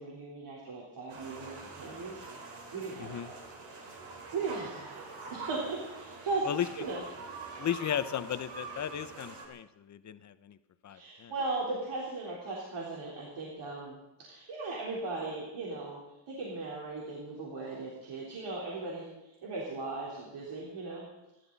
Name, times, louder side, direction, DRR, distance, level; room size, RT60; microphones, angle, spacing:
voice 1, 0.0-2.3 2.7-3.3 3.9-5.0 5.3-6.5 6.8-7.0 10.9-16.0 16.3-21.0, right 3 dB, 55° right, -4 dB, 3.9 m, -38 dB
sound 1, 1.1-9.5, right 3 dB, 70° right, 4.5 m, -45 dB
voice 2, 3.0-3.3 6.4-6.7 7.6-10.6 10.8-11.3, left 10 dB, 35° left, 12 dB, 0.8 m, -35 dB
29.0 x 12.0 x 4.1 m, 0.94 s
cardioid pair, 160°, 49 cm